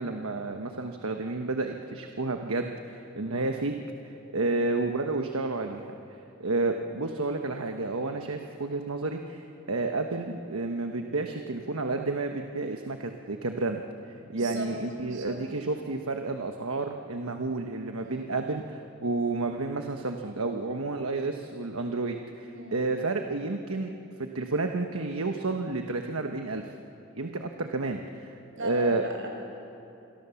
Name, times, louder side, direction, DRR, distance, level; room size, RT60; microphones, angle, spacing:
voice 1, 0.0-3.7 4.3-5.9 6.4-13.8 14.3-26.7 27.1-28.3 28.6-29.0, right 3 dB, 75° right, 4 dB, 1.2 m, -31 dB
voice 2, 14.2-14.7 15.0-15.4 18.0-18.3 22.5-22.8 28.5-29.3, right 1 dB, 60° right, 1 dB, 5.8 m, -39 dB
28.0 x 22.5 x 7.1 m, 2.8 s
head